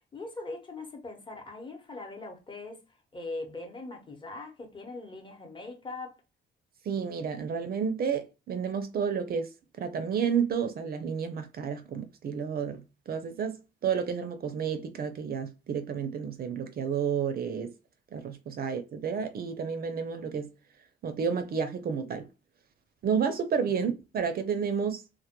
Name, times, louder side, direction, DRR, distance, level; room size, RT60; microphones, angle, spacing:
voice 1, 0.1-2.8 3.1-6.1 18.6-18.7 23.7-23.8, left 2 dB, 25° left, 0.8 m, -41 dB
voice 2, 6.9-9.5 9.8-17.7 18.1-20.5 21.0-22.3 23.0-25.0, right 6 dB, 50° right, 0.4 m, -31 dB
2.1 x 2.1 x 2.8 m
cardioid pair, 90°, 20 cm